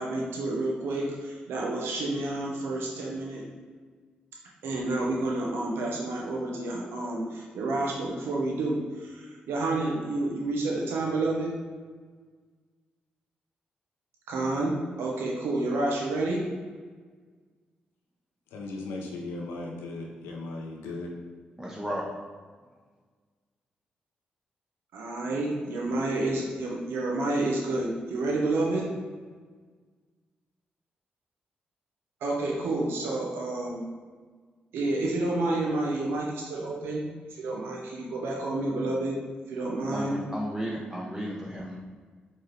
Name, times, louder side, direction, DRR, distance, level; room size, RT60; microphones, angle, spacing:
voice 1, 0.0-3.4 4.6-11.5 14.3-16.4 24.9-28.9 32.2-33.8 34.7-37.0 37.3-39.2 39.5-40.2, right 2 dB, 80° right, -2 dB, 0.8 m, -29 dB
voice 2, 18.5-21.1, left 2 dB, 90° left, 0 dB, 0.5 m, -37 dB
voice 3, 21.6-22.0 39.9-41.8, equal, 10° right, -3 dB, 0.7 m, -33 dB
4.5 x 3.1 x 3.2 m, 1.5 s
supercardioid pair, 45°, 4 cm